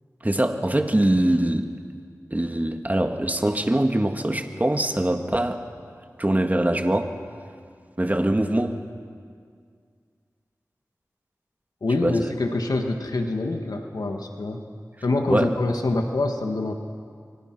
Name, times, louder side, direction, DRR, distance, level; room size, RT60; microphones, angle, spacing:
voice 1, 0.2-1.7 2.3-5.6 6.2-7.2 8.0-8.8 12.0-12.2 15.3-15.5, right 1 dB, 25° right, 5 dB, 2.1 m, -23 dB
voice 2, 11.8-14.6 15.0-16.7, left 2 dB, 85° left, 4 dB, 1.7 m, -25 dB
28.0 x 24.0 x 6.2 m, 2.1 s
cardioid pair, 40°, 6 cm